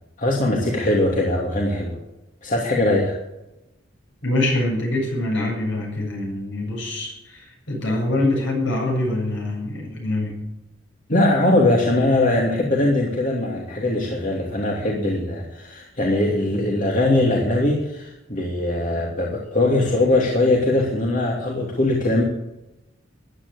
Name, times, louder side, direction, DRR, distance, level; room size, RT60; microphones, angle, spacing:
voice 1, 0.2-2.0 2.4-3.2 11.1-22.2, left 2 dB, 45° left, -2 dB, 2.7 m, -21 dB
voice 2, 4.2-10.4, left 1 dB, 65° left, 0 dB, 7.6 m, -24 dB
14.5 x 11.0 x 8.3 m, 0.95 s
head